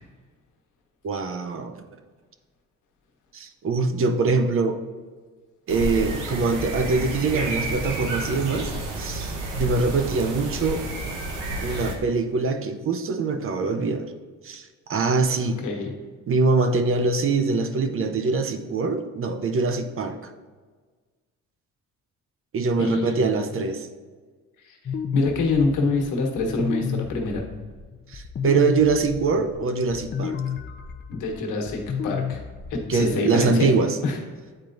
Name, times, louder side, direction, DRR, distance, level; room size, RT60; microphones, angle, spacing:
voice 1, 1.0-1.8 3.3-4.8 5.7-8.7 9.0-10.9 11.6-14.1 14.4-15.6 16.3-20.2 22.5-23.9 28.1-30.4 32.9-34.0, right 4 dB, 45° right, 7 dB, 0.7 m, -23 dB
sound 1, 5.7-11.9, right 2 dB, 90° right, 1.1 m, -30 dB
voice 2, 15.6-15.9 22.8-23.5 24.6-24.8 25.1-27.4 31.1-32.4 32.9-33.7 34.0-34.2, left 3 dB, 90° left, 2 dB, 1.2 m, -25 dB
sound 2, 24.9-33.1, left 7 dB, 35° left, 0.5 m, -33 dB
8.8 x 4.4 x 2.6 m, 1.4 s
cardioid pair, 90°, 30 cm